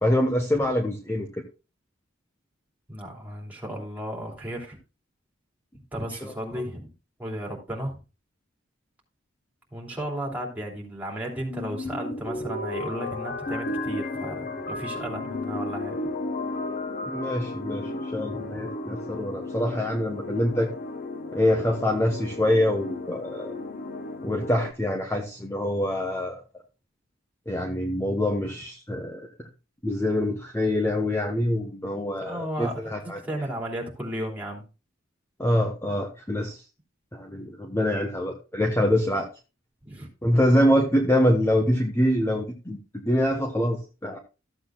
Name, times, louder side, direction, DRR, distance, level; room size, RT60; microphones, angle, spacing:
voice 1, 0.0-1.3 6.2-6.3 17.0-20.7 21.3-23.5 24.2-26.3 27.5-29.3 29.8-33.2 35.4-36.6 37.1-39.3 40.2-44.2, left 1 dB, 15° left, 2 dB, 1.1 m, -25 dB
voice 2, 2.9-4.8 5.9-6.9 7.2-8.0 9.7-16.0 18.2-18.5 32.2-34.6 39.8-40.1, right 1 dB, 10° right, -1 dB, 3.1 m, -34 dB
sound 1, 11.5-24.7, left 2 dB, 45° left, 0.9 m, -34 dB
14.0 x 7.9 x 2.3 m, 0.30 s
head